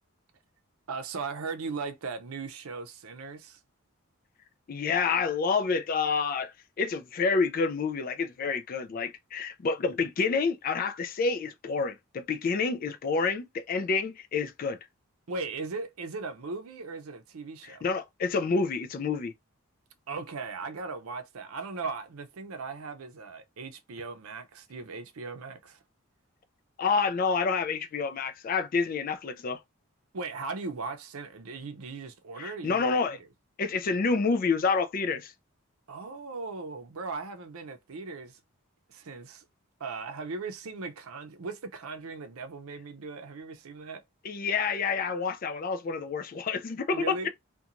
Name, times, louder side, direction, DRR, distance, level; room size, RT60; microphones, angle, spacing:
voice 1, 0.9-3.6 15.3-17.9 20.1-25.8 30.1-33.2 35.9-38.4 38.9-39.4 39.8-44.0 46.9-47.3, right 4 dB, 85° right, 0.5 m, -38 dB
voice 2, 4.7-14.8 17.8-19.3 26.8-29.6 32.4-33.2 33.6-35.3 44.2-47.3, left 4 dB, 40° left, 0.3 m, -28 dB
2.5 x 2.2 x 2.8 m
head